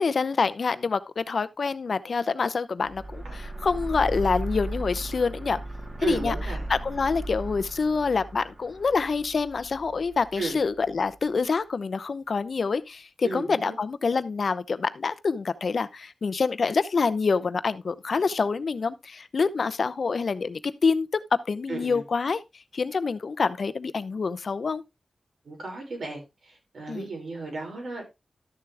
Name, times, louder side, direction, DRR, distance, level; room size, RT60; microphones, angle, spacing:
voice 1, 0.0-5.6 6.0-6.3 6.7-21.1 21.5-22.4 22.7-24.8 26.9-27.1, left 4 dB, 70° left, 0.8 m, -26 dB
sound 1, 2.8-11.1, right 1 dB, 45° right, 3.4 m, -36 dB
voice 2, 6.0-6.6 10.4-10.6 13.2-13.7 21.7-22.0 25.5-26.2 26.7-28.0, right 3 dB, 75° right, 5.6 m, -33 dB
12.5 x 6.9 x 3.4 m
cardioid pair, 60°, 0 cm